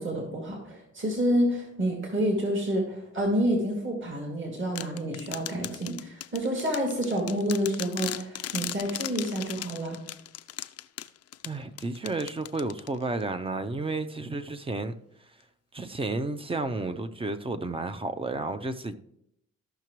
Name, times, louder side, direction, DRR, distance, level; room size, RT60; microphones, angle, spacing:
voice 1, 0.0-10.0, equal, 40° right, 2.5 m, -28 dB
sound 1, 4.8-13.2, left 12 dB, 55° left, 0.5 m, -38 dB
voice 2, 11.4-14.9 15.7-18.9, right 3 dB, 20° right, 0.6 m, -32 dB
13.5 x 5.8 x 3.1 m
cardioid pair, 90°, 30 cm